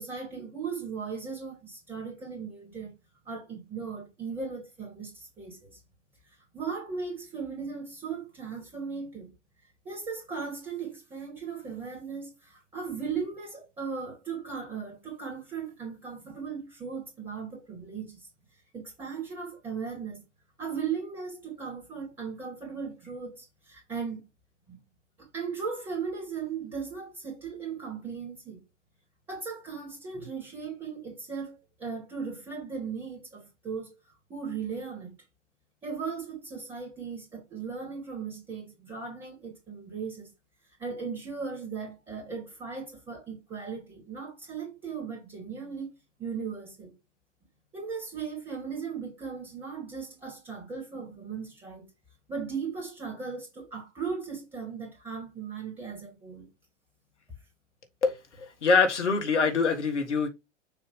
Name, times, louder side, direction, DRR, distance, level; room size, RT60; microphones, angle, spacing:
voice 1, 0.0-2.9 3.3-5.8 6.5-9.3 9.8-18.3 18.7-20.2 20.6-24.2 24.7-24.8 25.2-28.6 29.3-33.9 34.3-35.1 35.8-40.3 40.8-45.9 46.2-46.9 47.7-51.9 52.3-56.5, right 5 dB, 15° right, 2.1 m, -37 dB
voice 2, 58.0-60.3, left 4 dB, 65° left, 1.7 m, -25 dB
6.8 x 2.8 x 4.9 m
figure-of-eight pair, 100°, 37 cm